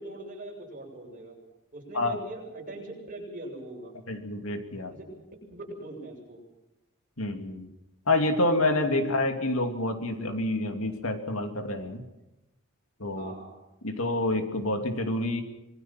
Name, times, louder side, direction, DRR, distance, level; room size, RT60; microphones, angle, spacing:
voice 1, 0.0-1.4 1.7-3.9 4.9-5.0 5.5-6.4 8.9-9.0 13.1-13.5, right 1 dB, 40° right, 0 dB, 7.9 m, -41 dB
voice 2, 4.1-4.9 7.2-7.7 8.1-12.0 13.0-13.3 13.8-15.4, left 2 dB, 75° left, 5 dB, 2.8 m, -28 dB
26.0 x 22.0 x 6.0 m, 0.94 s
head